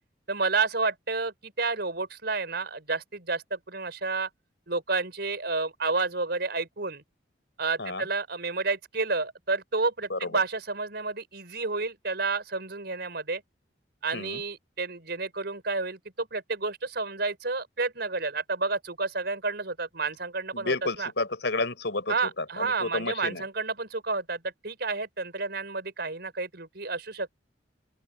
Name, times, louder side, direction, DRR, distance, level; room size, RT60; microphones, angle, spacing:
voice 1, 0.3-4.3 4.7-7.0 7.6-13.4 14.0-21.1 22.1-27.3, right 3 dB, 60° right, 5.5 m, -30 dB
voice 2, 20.5-23.4, left 3 dB, 70° left, 6.7 m, -31 dB
open air
head